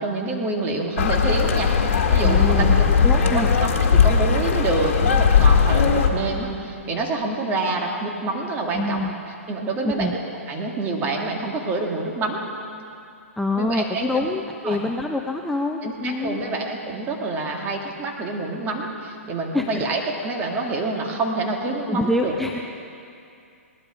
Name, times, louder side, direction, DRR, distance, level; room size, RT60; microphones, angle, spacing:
voice 1, 0.0-2.8 3.1-9.0 9.5-12.5 13.6-14.3 14.6-14.8 15.8-22.3, right 3 dB, 25° right, 0 dB, 2.1 m, -27 dB
sound 1, 1.0-6.1, left 6 dB, 60° left, 1.8 m, -18 dB
voice 2, 2.2-2.8 3.0-3.5 8.7-9.1 9.8-10.1 13.4-16.4 19.5-19.8 21.9-22.6, left 2 dB, 5° left, 2 dB, 0.6 m, -25 dB
19.0 x 12.5 x 5.0 m, 2.5 s
hypercardioid pair, 130°, 8 cm